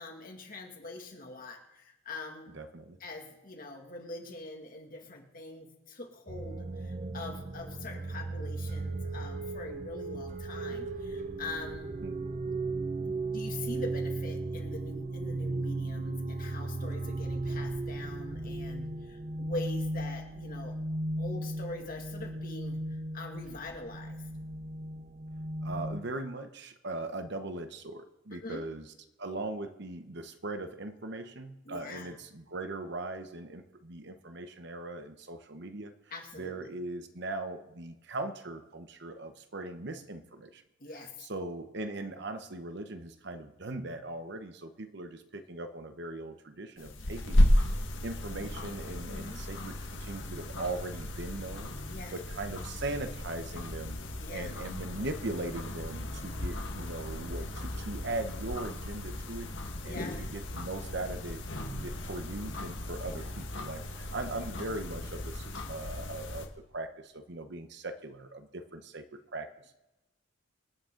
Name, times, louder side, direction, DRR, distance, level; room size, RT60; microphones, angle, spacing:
voice 1, 0.0-2.5 3.0-11.9 13.0-20.7 21.2-24.2 28.4-28.6 31.7-32.1 36.1-36.7 40.8-41.1 49.1-49.4 51.9-52.1 54.2-54.5 59.8-60.3 62.9-63.4, left 2 dB, 45° left, 2 dB, 2.2 m, -43 dB
voice 2, 2.5-3.0 12.0-12.3 25.6-28.9 29.2-35.9 36.3-40.6 41.2-47.7 48.0-51.8 52.1-54.0 54.3-61.4 61.7-69.7, right 2 dB, 60° right, 8 dB, 1.0 m, -39 dB
sound 1, 6.3-26.0, right 2 dB, 40° right, 0.7 m, -36 dB
sound 2, 46.8-66.5, left 1 dB, 80° left, 1.6 m, -34 dB
26.0 x 8.9 x 3.9 m, 1.0 s
head